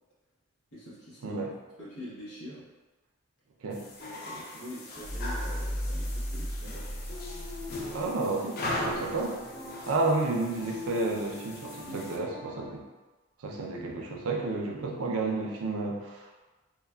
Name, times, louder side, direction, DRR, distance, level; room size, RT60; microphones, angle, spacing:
voice 1, 0.7-1.4 1.8-2.7 4.0-7.0 7.9-8.1 11.8-12.8, equal, 80° left, -8 dB, 0.9 m, -45 dB
sound 1, 3.7-12.2, left 1 dB, 45° left, 0.3 m, -39 dB
sound 2, 4.9-7.9, equal, 5° right, 0.7 m, -35 dB
sound 3, 7.1-12.7, left 1 dB, 20° left, 1.0 m, -45 dB
voice 2, 7.9-9.3 9.9-12.8 13.4-16.4, right 3 dB, 75° right, 0 dB, 0.5 m, -31 dB
3.1 x 2.2 x 2.2 m, 1.2 s
head